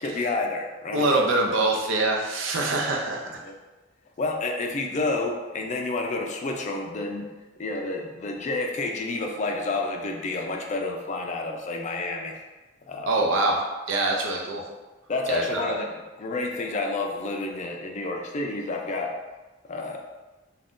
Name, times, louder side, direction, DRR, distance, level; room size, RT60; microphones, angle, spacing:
voice 1, 0.0-1.0 3.4-3.5 4.2-7.3 7.6-12.4 12.8-13.1 15.1-15.9 16.2-19.1 19.7-20.0, left 3 dB, 40° left, 2 dB, 0.4 m, -29 dB
voice 2, 0.9-3.3 13.1-13.6 13.9-14.6 15.3-15.7, right 2 dB, 85° right, 1 dB, 0.5 m, -24 dB
2.5 x 2.2 x 3.6 m, 1.2 s
head